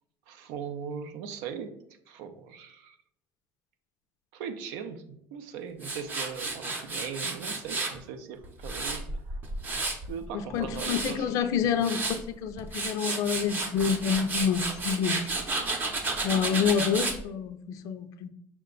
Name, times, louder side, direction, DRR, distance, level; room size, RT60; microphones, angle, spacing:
voice 1, 0.3-1.7 2.1-3.0 4.3-9.4 10.0-11.3, right 7 dB, 80° right, 8 dB, 0.5 m, -39 dB
Tools, 5.8-8.0 8.4-10.1 10.5-11.1 11.6-12.2 12.6-17.2, right 3 dB, 25° right, 0.7 m, -32 dB
voice 2, 10.3-15.3 16.2-18.3, left 7 dB, 55° left, 10 dB, 0.4 m, -28 dB
5.8 x 2.2 x 3.7 m, 0.75 s
cardioid pair, 150°, 7 cm